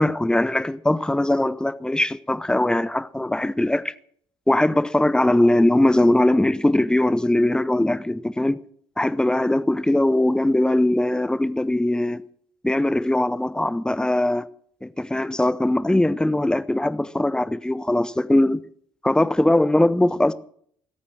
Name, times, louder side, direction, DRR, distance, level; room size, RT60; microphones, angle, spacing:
voice 1, 0.0-3.9 4.5-8.6 9.0-12.2 12.6-14.5 14.8-18.6 19.0-20.3, left 1 dB, 5° left, 0.8 m, -20 dB
20.5 x 8.7 x 6.2 m
figure-of-eight pair, 50°, 12 cm